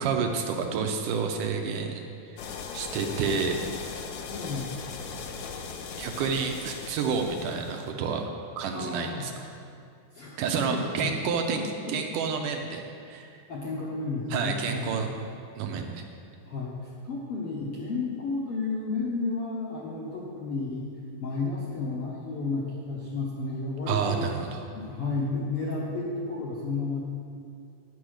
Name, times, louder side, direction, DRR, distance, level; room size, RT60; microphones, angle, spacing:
voice 1, 0.0-2.1 2.3-2.4 2.7-3.6 6.0-8.3 8.6-9.3 10.4-11.6 11.9-13.3 14.3-15.1 15.6-16.0 23.9-24.6, right 5 dB, 80° right, 3 dB, 2.1 m, -29 dB
sound 1, 2.4-7.9, left 5 dB, 80° left, 2.4 m, -39 dB
voice 2, 4.3-4.7 8.7-9.3 10.1-10.4 10.7-11.1 11.5-11.9 13.5-14.9 16.4-20.9 21.2-24.3 24.7-27.0, left 3 dB, 65° left, -5 dB, 1.5 m, -32 dB
9.9 x 6.1 x 6.4 m, 2.3 s
omnidirectional pair, 3.9 m